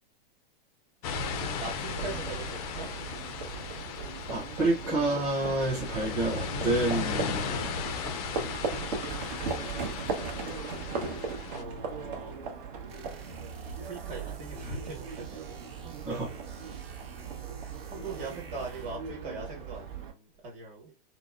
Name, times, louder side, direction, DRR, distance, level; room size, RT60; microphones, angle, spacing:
sound 1, 1.0-11.6, left 7 dB, 40° left, 0.4 m, -36 dB
voice 1, 1.1-2.9 11.5-12.3 13.6-15.6 15.8-16.3 17.9-20.9, right 3 dB, 25° right, 1.2 m, -41 dB
Livestock farm animals working animals, 1.1-20.1, right 5 dB, 55° right, 0.9 m, -38 dB
voice 2, 4.3-7.7 16.1-16.3, right 2 dB, 5° right, 0.6 m, -29 dB
sound 2, 12.9-19.1, right 7 dB, 80° right, 1.0 m, -46 dB
3.8 x 2.0 x 2.4 m
hypercardioid pair, 140°, 30 cm